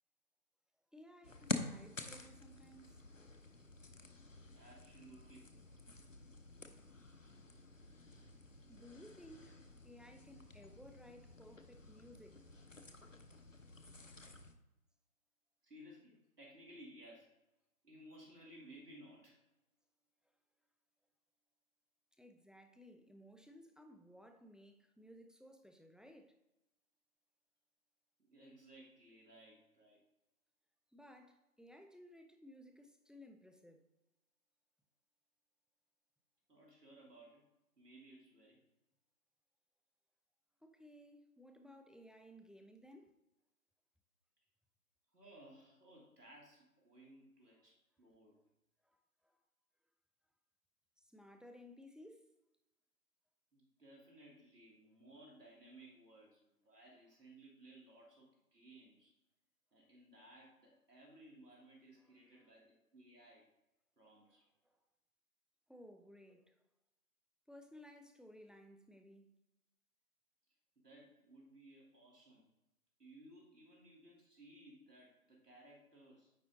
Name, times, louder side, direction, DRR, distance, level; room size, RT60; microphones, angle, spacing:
voice 1, 0.9-3.0 8.7-12.4 22.2-26.4 30.9-33.9 40.6-43.2 48.8-49.4 51.0-52.3 62.0-62.5 64.3-64.4 65.7-66.6 67.5-69.4, equal, ahead, 0.4 m, -58 dB
sound 1, 1.2-14.5, left 3 dB, 55° left, 0.7 m, -49 dB
voice 2, 4.5-5.5 15.6-17.3 17.8-19.4 28.3-30.0 36.5-37.4 37.8-38.6 45.1-48.4 53.5-59.1 59.7-63.5 64.0-64.4 70.8-72.5 73.0-76.3, right 1 dB, 80° right, 2.1 m, -59 dB
9.2 x 3.8 x 3.7 m
figure-of-eight pair, 180°, 47 cm